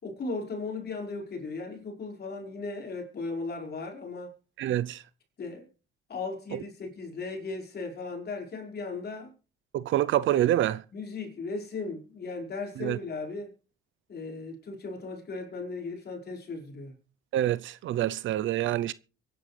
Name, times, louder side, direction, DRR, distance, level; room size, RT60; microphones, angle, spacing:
voice 1, 0.0-4.3 5.4-5.7 6.1-9.3 10.9-13.5 14.1-16.9, left 3 dB, 55° left, 5.4 m, -37 dB
voice 2, 4.6-5.0 9.7-10.8 12.8-13.0 17.3-18.9, right 12 dB, 75° right, 0.6 m, -26 dB
24.0 x 10.5 x 3.3 m
cardioid pair, 90°, 20 cm